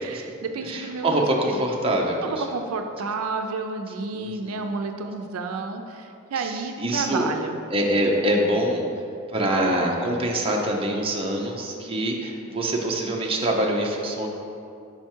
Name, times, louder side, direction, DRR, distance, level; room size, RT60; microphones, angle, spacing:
voice 1, 0.0-1.2 1.9-2.0 2.2-7.6, right 3 dB, 90° right, 5 dB, 0.4 m, -31 dB
voice 2, 0.6-2.5 4.1-4.6 6.4-7.3 7.7-8.8 9.3-14.3, right 1 dB, 25° right, 0 dB, 0.6 m, -25 dB
5.6 x 4.5 x 4.5 m, 2.5 s
head